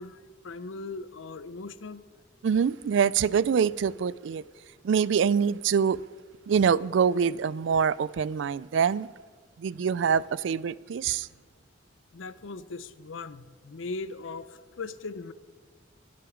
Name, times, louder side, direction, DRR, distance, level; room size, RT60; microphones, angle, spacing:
voice 1, 0.0-2.0 12.1-15.3, left 3 dB, 85° left, 0.6 m, -39 dB
voice 2, 2.4-4.4 4.8-6.0 6.5-9.1 9.6-11.3, right 7 dB, 70° right, 0.3 m, -25 dB
22.5 x 7.7 x 5.1 m
head